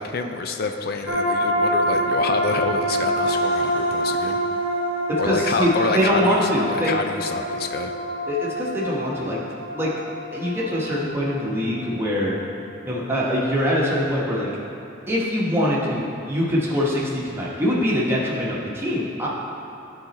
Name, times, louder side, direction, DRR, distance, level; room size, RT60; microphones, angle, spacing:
voice 1, 0.0-4.4 5.2-7.9, left 3 dB, 50° left, 6 dB, 0.5 m, -27 dB
sound 1, 1.1-12.4, equal, 90° right, 1.2 m, -26 dB
voice 2, 5.1-7.0 8.3-9.4 9.7-9.9 10.3-12.4 12.8-14.5 15.1-19.3, equal, 10° right, -6 dB, 1.2 m, -23 dB
11.5 x 3.9 x 4.2 m, 2.9 s
head